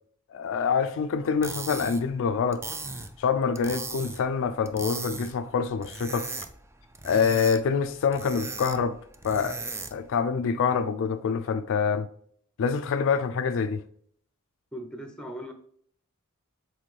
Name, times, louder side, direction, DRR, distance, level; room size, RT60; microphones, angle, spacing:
voice 1, 0.3-2.6 3.2-6.3 7.0-9.0 9.2-9.6 9.9-12.1 12.6-13.8, left 6 dB, 60° left, 0.4 m, -26 dB
sound 1, 1.2-10.1, right 3 dB, 10° right, 0.4 m, -38 dB
voice 2, 14.7-15.5, equal, 5° left, 0.8 m, -38 dB
7.4 x 3.9 x 3.2 m
head